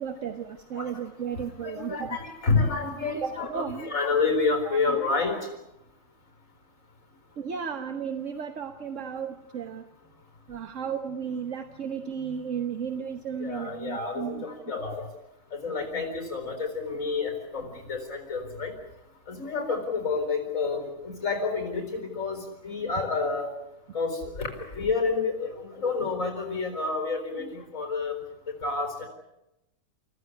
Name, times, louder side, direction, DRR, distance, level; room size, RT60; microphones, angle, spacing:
voice 1, 0.0-2.2 3.1-3.9 4.6-5.0 7.4-9.9 10.5-14.4, right 7 dB, 65° right, 7 dB, 1.5 m, -34 dB
voice 2, 1.6-5.5 13.4-15.0 15.5-18.7 19.3-23.5 23.9-24.5 24.7-28.1 28.6-29.1, left 4 dB, 70° left, 4 dB, 4.9 m, -29 dB
29.5 x 15.0 x 9.8 m, 0.88 s
omnidirectional pair, 1.4 m